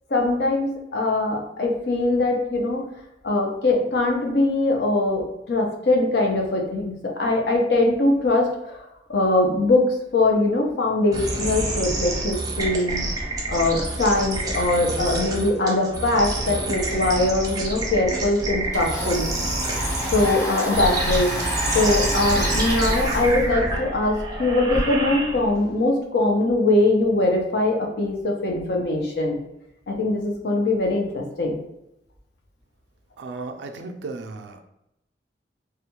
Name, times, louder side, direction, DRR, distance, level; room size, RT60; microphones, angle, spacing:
voice 1, 0.1-2.9 3.2-8.8 9.1-9.9 10.1-13.0 13.5-19.3 20.1-21.3 21.7-29.4 29.9-31.6, left 2 dB, 65° left, 1 dB, 0.6 m, -22 dB
sound 1, 11.1-25.7, right 2 dB, 20° right, 0.5 m, -27 dB
Domestic sounds home sounds, 17.8-17.9 18.2-24.8, equal, 20° left, 0.9 m, -30 dB
voice 2, 33.2-34.6, right 3 dB, 80° right, 6 dB, 0.3 m, -35 dB
2.4 x 2.1 x 2.9 m, 0.86 s
head